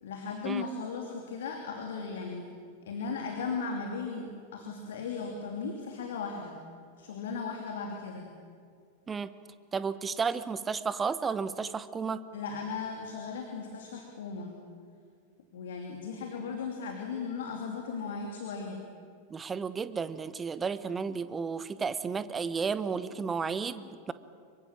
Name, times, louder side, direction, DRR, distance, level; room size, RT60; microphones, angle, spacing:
voice 1, 0.0-2.4 2.8-6.6 7.0-8.3 12.3-14.5 15.5-18.8, left 5 dB, 60° left, 2 dB, 2.8 m, -37 dB
voice 2, 9.7-12.2 19.3-24.1, right 5 dB, 15° right, 14 dB, 1.1 m, -32 dB
26.0 x 23.0 x 7.4 m, 2.2 s
figure-of-eight pair, 90°, 0 cm